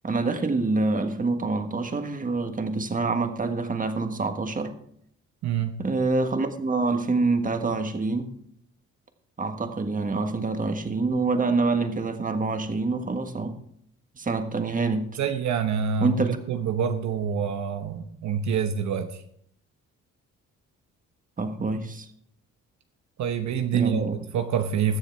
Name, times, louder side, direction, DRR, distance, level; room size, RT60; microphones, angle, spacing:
voice 1, 0.0-4.7 5.8-8.3 9.4-13.6 14.2-15.1 16.0-16.4 21.4-22.1 23.7-24.2, right 3 dB, 25° right, 7 dB, 1.5 m, -26 dB
voice 2, 5.4-5.8 15.2-19.2 23.2-25.0, right 7 dB, 65° right, 7 dB, 1.0 m, -26 dB
21.0 x 7.1 x 3.5 m, 0.66 s
cardioid pair, 90°, 30 cm